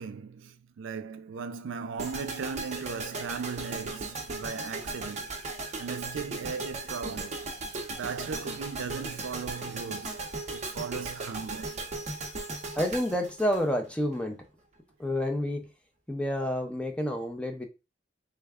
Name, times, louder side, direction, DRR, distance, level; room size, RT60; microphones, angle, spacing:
voice 1, 0.0-5.3 5.8-7.5 7.9-10.2 10.5-11.8, right 5 dB, 80° right, 0.4 m, -37 dB
sound 1, 2.0-14.2, right 3 dB, 35° right, 0.6 m, -37 dB
voice 2, 12.8-14.4 15.0-15.7 16.1-17.7, equal, 5° left, 0.5 m, -29 dB
3.3 x 2.1 x 3.5 m
head